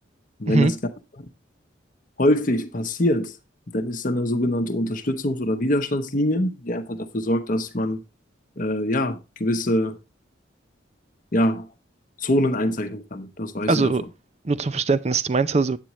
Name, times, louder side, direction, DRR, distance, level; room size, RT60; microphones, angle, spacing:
voice 1, 0.4-0.8 2.2-3.4 3.7-8.0 8.6-10.0 11.3-11.7 12.2-13.9, left 1 dB, 45° left, 0.9 m, -24 dB
voice 2, 13.7-14.0 14.4-15.8, right 3 dB, 35° right, 0.5 m, -21 dB
9.1 x 8.5 x 3.0 m
head